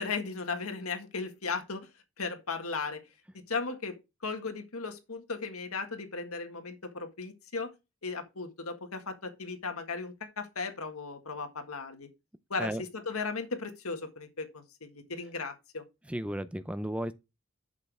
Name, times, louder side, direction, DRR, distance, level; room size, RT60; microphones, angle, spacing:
voice 1, 0.0-1.9 2.2-3.0 3.5-7.7 8.0-12.1 12.5-15.8, left 4 dB, 85° left, 1.8 m, -36 dB
voice 2, 16.1-17.1, equal, 5° right, 0.5 m, -34 dB
8.2 x 6.6 x 3.5 m
head